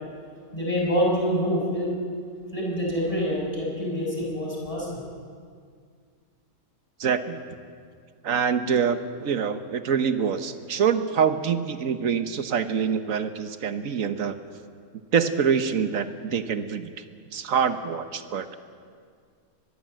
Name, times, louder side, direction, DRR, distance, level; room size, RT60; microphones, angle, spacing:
voice 1, 0.5-1.9 2.5-5.0, equal, 25° left, -3 dB, 5.8 m, -26 dB
voice 2, 7.0-7.4 8.2-14.4 15.1-16.9 17.3-18.6, right 7 dB, 70° right, 10 dB, 1.5 m, -25 dB
23.5 x 20.5 x 7.6 m, 2.1 s
omnidirectional pair, 1.5 m